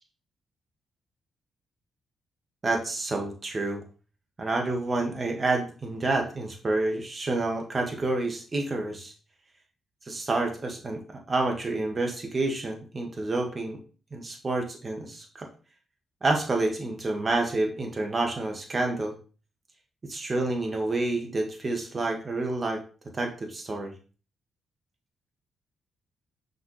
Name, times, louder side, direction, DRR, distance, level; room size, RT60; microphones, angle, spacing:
voice 1, 2.6-3.8 4.4-9.1 10.1-11.0 11.3-13.8 14.1-15.5 16.2-19.2 20.1-22.8 23.1-23.9, right 2 dB, 40° right, 2 dB, 1.7 m, -28 dB
5.9 x 5.2 x 3.2 m, 0.37 s
hypercardioid pair, 45°, 0 cm